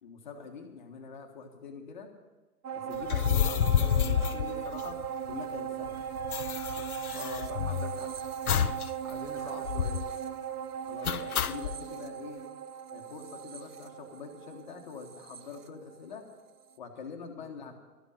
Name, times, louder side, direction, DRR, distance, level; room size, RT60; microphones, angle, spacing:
voice 1, 0.0-2.1 2.7-5.0 5.2-6.1 10.5-12.4 12.9-16.3 16.8-17.8, left 5 dB, 30° left, 3 dB, 1.3 m, -45 dB
sound 1, 2.6-16.3 16.7-16.8, right 8 dB, 70° right, 0.9 m, -38 dB
sound 2, 3.0-5.3 5.6-5.7 5.9-8.0 8.5-8.9 9.2-9.3 9.6-10.1 11.0-11.8, left 9 dB, 65° left, 0.7 m, -29 dB
voice 2, 7.1-8.1 9.0-10.0 17.4-17.8, left 1 dB, 15° right, -1 dB, 1.0 m, -43 dB
13.0 x 8.1 x 8.6 m, 1.2 s
hypercardioid pair, 155°, 48 cm